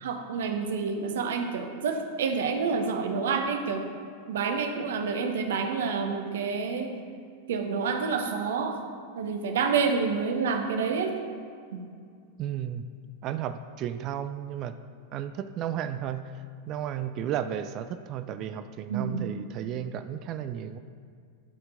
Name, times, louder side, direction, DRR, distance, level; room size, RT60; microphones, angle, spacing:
voice 1, 0.0-3.9 4.3-7.0 7.5-8.8 9.1-11.2 11.7-11.8 18.9-19.3, right 5 dB, 60° right, 6 dB, 0.8 m, -28 dB
voice 2, 12.4-12.8 13.2-14.8 15.1-20.8, right 9 dB, 35° right, 10 dB, 0.3 m, -33 dB
11.5 x 4.4 x 5.1 m, 2.2 s
figure-of-eight pair, 90°, 0 cm